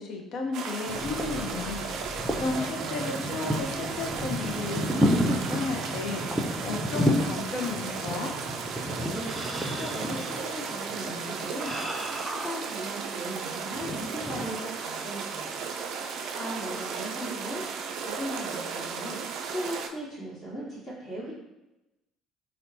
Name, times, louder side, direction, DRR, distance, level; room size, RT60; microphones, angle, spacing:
voice 1, 0.0-1.8 2.3-8.3, left 4 dB, 55° left, 3 dB, 0.5 m, -33 dB
sound 1, 0.5-19.9, right 5 dB, 60° right, 0.3 m, -35 dB
sound 2, 0.9-13.3 13.7-14.5, equal, 5° right, 0.5 m, -32 dB
voice 2, 8.9-11.7 12.2-15.6 16.3-17.6 18.0-21.3, right 1 dB, 40° left, -8 dB, 1.0 m, -38 dB
4.0 x 2.0 x 2.7 m, 0.94 s
figure-of-eight pair, 55°, 0 cm